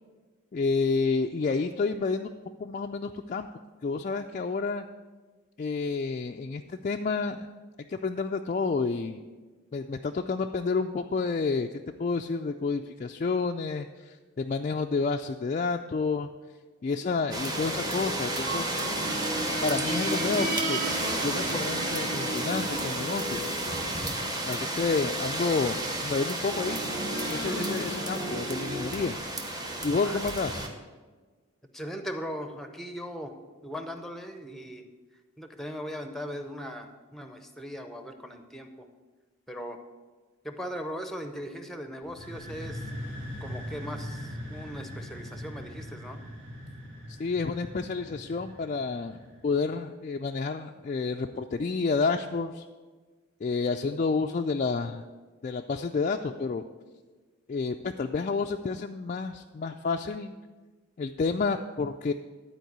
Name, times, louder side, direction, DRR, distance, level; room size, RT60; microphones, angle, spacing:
voice 1, 0.5-2.3 2.6-3.5 3.8-4.8 5.6-7.5 7.9-9.2 9.7-11.7 12.0-16.3 16.8-18.7 19.6-20.8 21.2-23.5 24.4-26.8 27.3-29.2 29.8-30.6 47.2-52.6 53.4-55.0 55.4-56.6 57.5-60.3 61.0-62.1, left 4 dB, 35° left, 3 dB, 0.3 m, -29 dB
sound 1, 17.3-30.7, right 1 dB, 20° right, 0.9 m, -32 dB
sound 2, 17.5-25.4 26.5-29.0, right 1 dB, 40° right, 1.5 m, -35 dB
voice 2, 31.7-33.3 33.6-34.8 35.4-38.9 39.5-39.8 40.4-42.8 43.4-46.2, equal, ahead, 7 dB, 0.7 m, -39 dB
sound 3, 42.0-49.7, equal, 75° right, 2.4 m, -41 dB
12.0 x 4.6 x 8.0 m, 1.4 s
head